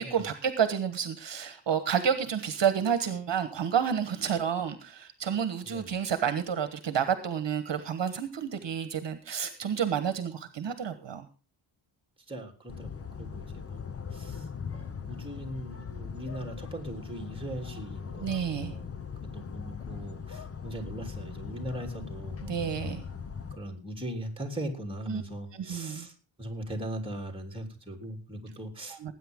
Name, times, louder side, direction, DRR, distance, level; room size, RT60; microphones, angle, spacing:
voice 1, 0.0-11.3 18.2-18.7 22.4-23.0 25.1-25.2 25.5-26.1 28.9-29.1, right 8 dB, 55° right, 10 dB, 1.4 m, -30 dB
voice 2, 5.6-5.9 12.3-14.4 14.7-18.2 18.5-18.8 19.3-22.9 23.5-26.1 26.4-29.1, right 1 dB, 10° right, 2 dB, 3.2 m, -40 dB
sound 1, 12.7-23.6, left 6 dB, 30° left, 0.8 m, -40 dB
19.5 x 9.2 x 3.7 m, 0.34 s
wide cardioid pair, 120°, 50 cm